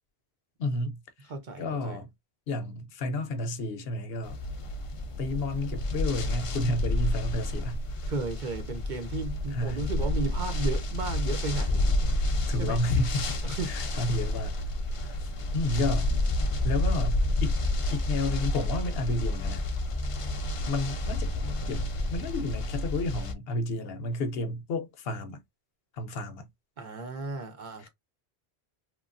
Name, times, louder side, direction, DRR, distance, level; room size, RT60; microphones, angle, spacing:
voice 1, 0.6-1.3 1.6-2.1 2.5-4.4 5.2-7.8 9.5-9.8 12.5-14.6 15.0-16.1 16.6-17.6 17.9-19.6 20.7-21.3 21.7-25.4 25.9-26.5 27.8-27.9, left 2 dB, 70° left, 0.8 m, -31 dB
voice 2, 1.3-2.0 8.1-11.8 12.6-12.8 13.4-14.0 26.8-27.9, right 3 dB, 55° right, 0.7 m, -34 dB
sound 1, 4.2-23.3, left 1 dB, 45° left, 0.4 m, -30 dB
3.0 x 2.3 x 2.4 m
omnidirectional pair, 1.1 m